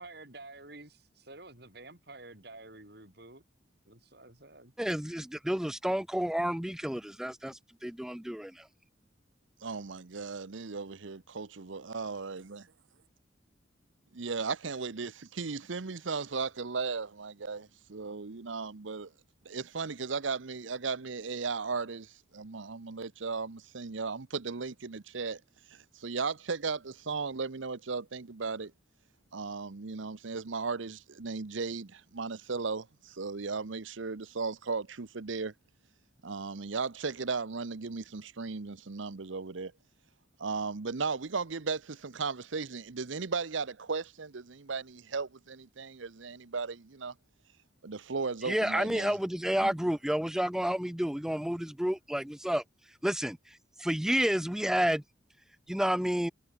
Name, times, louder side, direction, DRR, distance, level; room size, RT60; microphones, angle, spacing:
voice 1, 0.0-3.4 3.9-4.7, right 2 dB, 55° right, 4.4 m, -50 dB
voice 2, 4.8-8.6 48.4-52.6 53.0-53.4 53.8-55.0 55.7-56.3, equal, 5° right, 0.3 m, -30 dB
voice 3, 9.6-12.7 14.1-19.1 19.4-25.4 25.7-28.7 29.3-35.5 36.2-39.7 40.4-47.1 47.8-49.2 49.6-49.7, right 4 dB, 80° right, 0.9 m, -36 dB
head